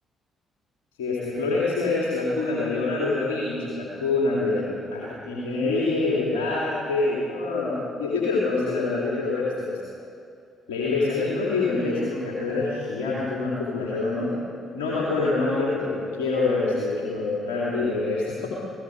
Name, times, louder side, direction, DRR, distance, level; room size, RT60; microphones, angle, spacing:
voice 1, 1.0-9.8 10.7-14.3 14.7-18.5, left 3 dB, 70° left, -6 dB, 3.4 m, -26 dB
29.0 x 18.0 x 5.1 m, 2.4 s
figure-of-eight pair, 45°, 0 cm